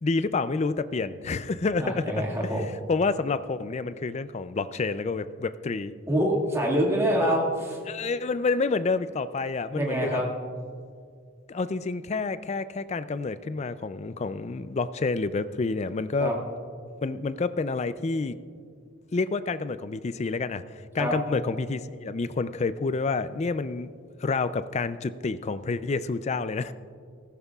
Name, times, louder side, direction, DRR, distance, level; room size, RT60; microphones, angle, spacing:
voice 1, 0.0-2.1 2.4-2.5 2.9-5.9 7.2-7.4 7.9-10.2 11.5-16.3 17.0-18.3 19.1-20.6 20.9-23.9 24.2-26.7, left 3 dB, 30° left, 13 dB, 0.4 m, -28 dB
voice 2, 1.8-2.7 6.1-7.8 9.7-10.3 16.2-16.4 21.0-21.1, equal, 15° right, -2 dB, 1.9 m, -25 dB
19.0 x 15.0 x 2.4 m, 2.2 s
head